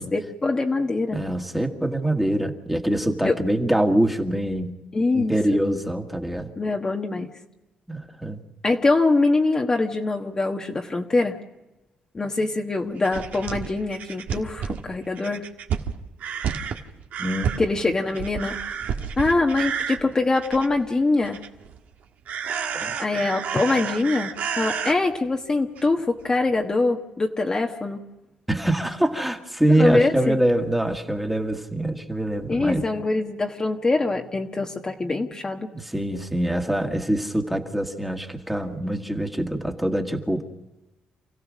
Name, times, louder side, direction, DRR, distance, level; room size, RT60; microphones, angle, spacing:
voice 1, 0.0-1.2 3.2-3.3 4.9-5.6 6.6-7.3 8.6-11.4 12.1-15.4 17.6-18.6 19.2-21.4 23.0-28.0 29.8-30.4 32.5-35.7, left 3 dB, 25° left, 1 dB, 1.3 m, -23 dB
voice 2, 1.1-4.8 5.1-6.5 7.9-8.4 17.2-17.5 22.7-22.9 28.5-32.9 35.7-40.4, right 1 dB, 5° right, 3 dB, 1.9 m, -24 dB
sound 1, 13.0-20.9 21.2-21.8 22.3-24.9 25.8-25.9 26.2-26.3, right 7 dB, 70° right, 1.6 m, -30 dB
28.5 x 16.0 x 6.3 m, 1.0 s
cardioid pair, 125°, 3 cm